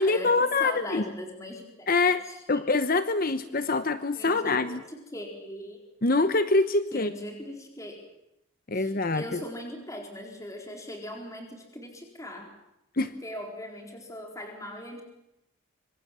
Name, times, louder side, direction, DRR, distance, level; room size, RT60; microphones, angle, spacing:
voice 1, 0.0-1.0 1.9-2.2 2.5-4.8 6.0-7.1 8.7-9.4 12.9-13.1, left 3 dB, 40° left, 12 dB, 0.9 m, -25 dB
voice 2, 0.6-1.9 2.3-2.4 3.6-3.7 4.1-4.6 4.9-5.8 6.9-8.0 8.7-12.5 13.2-15.0, left 1 dB, 15° left, 2 dB, 4.2 m, -40 dB
25.5 x 25.0 x 7.5 m, 0.87 s
head